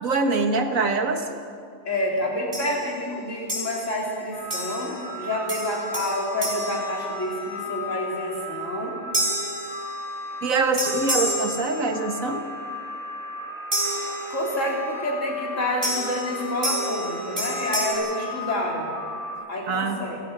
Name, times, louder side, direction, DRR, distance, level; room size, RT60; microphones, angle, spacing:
voice 1, 0.0-1.3 10.4-12.4 19.7-20.0, right 3 dB, 75° right, 6 dB, 1.9 m, -24 dB
voice 2, 1.9-9.0 14.3-18.9 19.5-20.2, left 1 dB, 65° left, -2 dB, 4.2 m, -28 dB
sound 1, 2.5-2.9 3.5-4.1 4.5-5.1 5.5-7.6 9.1-10.3 10.8-12.2 13.7-14.7 15.8-17.9, right 1 dB, 45° right, 4.7 m, -30 dB
sound 2, 4.3-19.3, left 2 dB, 85° left, 7.9 m, -36 dB
29.5 x 15.0 x 6.0 m, 2.4 s
omnidirectional pair, 1.4 m